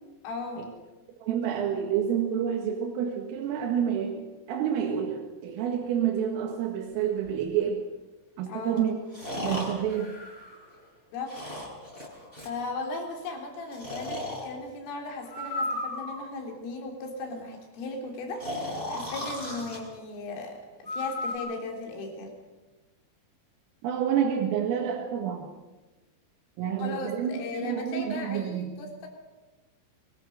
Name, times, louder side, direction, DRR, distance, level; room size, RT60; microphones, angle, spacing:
voice 1, 0.2-0.7 8.5-8.9 11.1-11.3 12.5-22.3 26.8-29.1, left 3 dB, 80° left, 2 dB, 5.9 m, -37 dB
voice 2, 1.2-7.9 8.4-9.0 9.3-10.2 23.8-25.5 26.6-28.8, right 8 dB, 85° right, 1 dB, 4.5 m, -29 dB
Breathing, 7.2-7.3 9.1-10.8 11.3-12.6 13.7-14.5 15.3-16.4 18.4-19.8 20.9-21.4, left 1 dB, 10° left, 6.3 m, -35 dB
24.5 x 22.0 x 6.5 m, 1.2 s
omnidirectional pair, 5.7 m